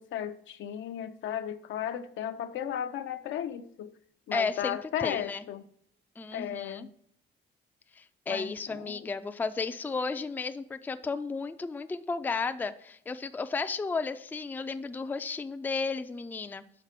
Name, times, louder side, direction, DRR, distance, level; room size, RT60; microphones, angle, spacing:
voice 1, 0.0-3.9 4.3-5.6 6.3-6.9 8.3-9.1, left 10 dB, 75° left, 10 dB, 0.5 m, -35 dB
voice 2, 4.3-5.4 6.2-6.9 7.9-16.6, left 4 dB, 10° left, 9 dB, 0.3 m, -33 dB
6.0 x 4.0 x 5.8 m, 0.69 s
cardioid pair, 90°, 20 cm